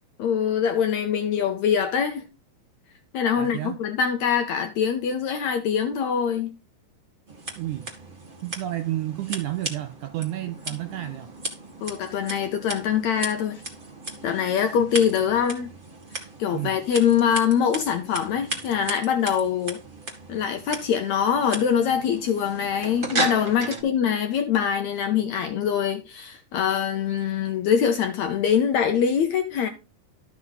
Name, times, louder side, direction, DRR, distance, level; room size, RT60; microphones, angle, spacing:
voice 1, 0.2-2.2 3.1-6.5 11.8-13.6 14.2-15.7 16.2-19.8 20.3-29.7, left 8 dB, 75° left, 1.7 m, -24 dB
voice 2, 3.3-3.8 7.6-7.9 8.4-11.3 16.5-16.8 23.6-23.9, right 14 dB, 80° right, 1.7 m, -31 dB
Scissors, 7.3-23.8, right 2 dB, 30° right, 0.9 m, -36 dB
12.0 x 6.0 x 4.0 m
omnidirectional pair, 4.0 m